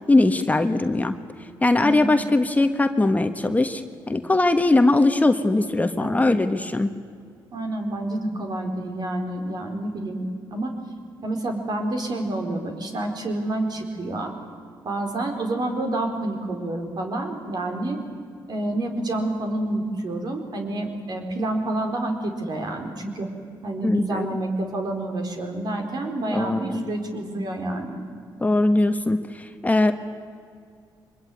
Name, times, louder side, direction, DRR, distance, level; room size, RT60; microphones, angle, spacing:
voice 1, 0.1-1.2 1.6-6.9 23.8-24.3 26.3-26.8 28.4-29.9, left 2 dB, 20° left, 7 dB, 1.4 m, -20 dB
voice 2, 1.8-2.1 6.0-6.3 7.5-10.7 11.2-14.3 14.8-18.0 18.5-23.3 23.6-28.0, right 1 dB, 55° right, 4 dB, 4.4 m, -28 dB
24.0 x 21.0 x 9.3 m, 2.2 s
cardioid pair, 70°, 8 cm